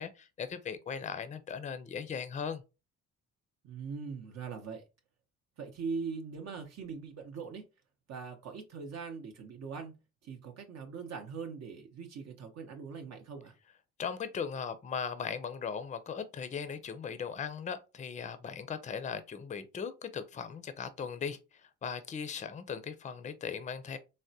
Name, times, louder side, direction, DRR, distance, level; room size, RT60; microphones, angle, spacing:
voice 1, 0.0-2.6 14.0-24.0, left 6 dB, 25° left, 0.4 m, -38 dB
voice 2, 3.6-4.8 5.6-7.6 8.1-9.9 10.2-13.5, right 5 dB, 60° right, 0.7 m, -41 dB
3.5 x 2.1 x 2.6 m
cardioid pair, 90°, 30 cm